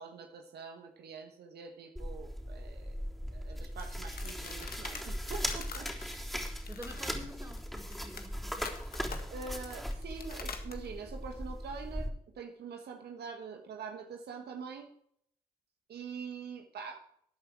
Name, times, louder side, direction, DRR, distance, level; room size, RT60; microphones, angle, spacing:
voice 1, 0.0-3.0 3.3-6.2 9.3-14.9 15.9-17.0, right 5 dB, 75° right, 4 dB, 1.4 m, -45 dB
sound 1, 2.0-12.1, equal, ahead, 3.5 m, -39 dB
sound 2, 3.8-10.9, left 6 dB, 65° left, 1.7 m, -47 dB
voice 2, 6.6-8.7, equal, 15° right, 3 dB, 3.4 m, -48 dB
13.5 x 8.5 x 4.7 m, 0.68 s
hypercardioid pair, 40°, 17 cm